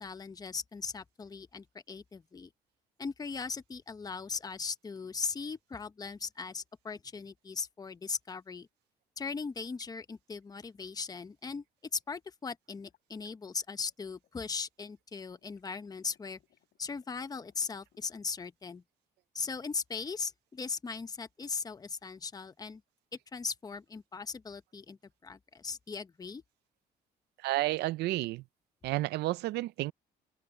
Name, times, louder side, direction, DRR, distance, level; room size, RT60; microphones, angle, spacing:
voice 1, 0.0-2.5 3.0-8.7 9.2-11.6 11.9-16.4 16.8-18.8 19.3-22.8 23.3-26.4, left 5 dB, 20° left, 1.0 m, -39 dB
sound 1, 12.8-14.6 15.2-18.4, left 12 dB, 65° left, 4.0 m, -71 dB
voice 2, 27.4-28.4 28.8-29.9, right 18 dB, 80° right, 0.5 m, -31 dB
open air
cardioid pair, 110°, 17 cm